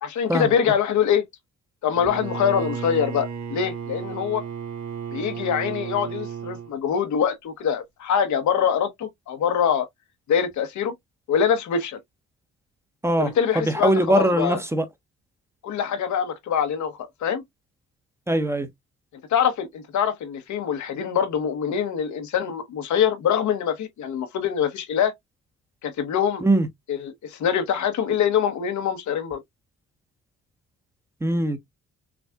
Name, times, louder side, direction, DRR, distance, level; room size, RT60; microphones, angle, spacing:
voice 1, 0.0-1.3 1.8-4.4 5.1-9.9 10.3-10.9 11.3-12.0 13.2-14.6 15.6-16.9 17.2-17.4 19.3-25.1 25.8-26.4 26.9-29.4, left 8 dB, 70° left, 1.1 m, -24 dB
Bowed string instrument, 1.9-6.7, right 7 dB, 65° right, 1.5 m, -33 dB
voice 2, 13.8-14.8 18.3-18.7 26.4-26.7 31.2-31.6, right 1 dB, 10° right, 1.1 m, -21 dB
6.0 x 2.5 x 2.3 m
cardioid pair, 90°, 30 cm